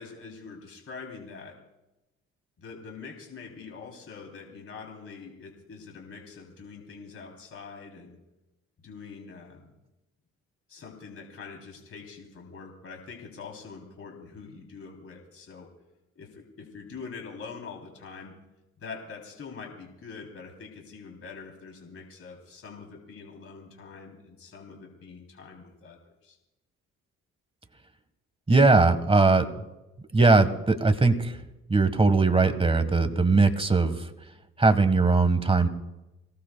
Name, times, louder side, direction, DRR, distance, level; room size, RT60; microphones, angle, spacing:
voice 1, 0.0-1.6 2.6-8.2 8.8-9.7 10.7-15.7 16.2-18.4 18.8-26.4, left 5 dB, 45° left, 1 dB, 3.4 m, -44 dB
voice 2, 28.5-29.5 30.1-31.4 31.7-34.1 34.6-35.7, right 3 dB, 20° right, 9 dB, 1.5 m, -20 dB
27.0 x 18.0 x 2.3 m, 0.98 s
cardioid pair, 90°, 30 cm